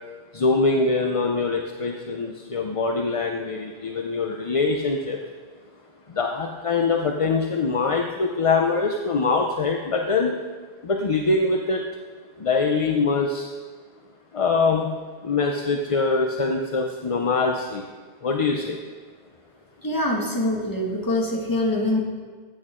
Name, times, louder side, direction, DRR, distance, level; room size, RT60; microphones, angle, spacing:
voice 1, 0.3-5.2 6.2-10.3 10.8-11.8 12.4-13.4 14.3-14.9 15.2-17.8 18.2-18.8, left 4 dB, 40° left, 2 dB, 0.6 m, -23 dB
voice 2, 19.8-22.0, left 1 dB, 20° left, -2 dB, 1.8 m, -24 dB
14.5 x 8.6 x 3.7 m, 1.5 s
omnidirectional pair, 1.1 m